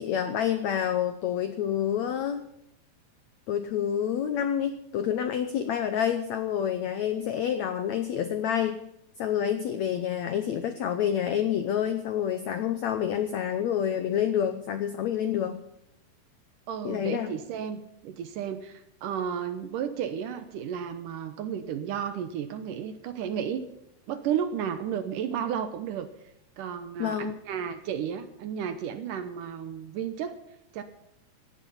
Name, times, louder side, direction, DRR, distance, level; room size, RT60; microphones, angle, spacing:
voice 1, 0.0-2.4 3.5-8.8 9.2-15.6 16.8-17.3 27.0-27.4, left 9 dB, 90° left, 9 dB, 1.5 m, -28 dB
voice 2, 16.7-23.7 24.1-26.1 26.6-30.4 30.7-30.8, right 8 dB, 70° right, 9 dB, 2.2 m, -33 dB
17.5 x 11.5 x 5.6 m, 0.82 s
omnidirectional pair, 4.5 m